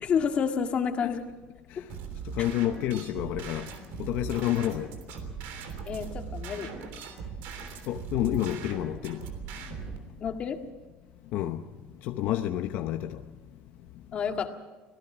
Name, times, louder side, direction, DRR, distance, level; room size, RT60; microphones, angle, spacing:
voice 1, 0.0-1.2 1.8-1.9 5.9-6.7 10.2-10.6 14.1-14.5, left 7 dB, 35° left, 1.9 m, -29 dB
sound 1, 1.9-10.0, right 5 dB, 80° right, 3.4 m, -39 dB
voice 2, 2.3-3.7 4.0-4.9 7.9-9.2 11.3-11.6 12.0-13.2, left 12 dB, 65° left, 0.9 m, -29 dB
25.0 x 18.0 x 6.1 m
cardioid pair, 150°, 3 cm